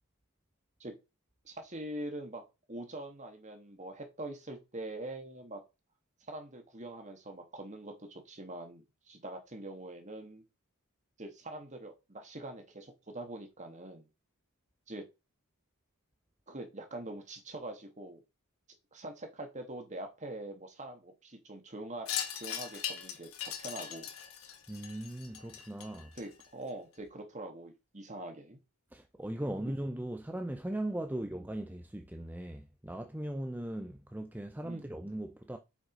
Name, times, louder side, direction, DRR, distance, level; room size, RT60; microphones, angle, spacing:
voice 1, 1.4-2.4 2.7-5.6 6.3-10.4 11.2-14.1 14.9-15.0 16.5-18.2 18.9-24.3 26.2-28.6 31.1-31.3 34.6-34.9, right 1 dB, 35° right, 2.0 m, -44 dB
Wind chime, 22.1-26.7, left 9 dB, 65° left, 1.5 m, -40 dB
voice 2, 24.7-26.1 28.9-35.6, right 1 dB, 10° right, 0.6 m, -39 dB
7.7 x 5.3 x 5.2 m
head